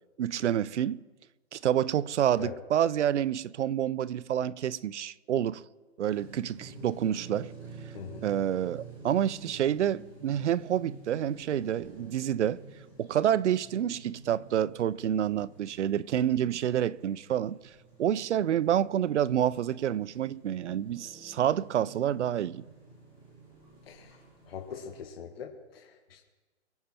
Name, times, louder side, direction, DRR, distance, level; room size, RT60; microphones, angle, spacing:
voice 1, 0.2-1.0 1.5-5.6 6.0-7.5 8.2-12.6 13.0-17.6 18.0-22.6, right 10 dB, 85° right, 0.6 m, -28 dB
sound 1, 6.0-25.0, right 3 dB, 15° right, 3.7 m, -50 dB
voice 2, 7.9-8.2 23.9-24.2 24.5-26.2, left 7 dB, 60° left, 2.0 m, -42 dB
23.5 x 9.6 x 4.4 m
hypercardioid pair, 170°, 34 cm